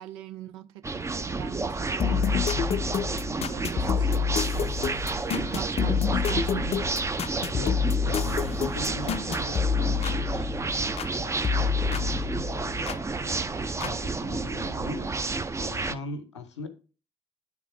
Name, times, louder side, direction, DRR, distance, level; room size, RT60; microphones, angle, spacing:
voice 1, 0.0-2.7 3.3-4.7 5.5-7.0, right 13 dB, 80° right, 0.5 m, -41 dB
sound 1, 0.8-15.9, right 3 dB, 20° right, 0.6 m, -31 dB
sound 2, 2.0-11.1 11.4-13.0 13.8-13.9, left 7 dB, 45° left, 0.5 m, -28 dB
voice 2, 7.5-10.5 11.0-12.2 13.1-15.1 15.6-16.7, left 2 dB, 90° left, 0.7 m, -40 dB
9.6 x 3.6 x 4.5 m
figure-of-eight pair, 45°, 14 cm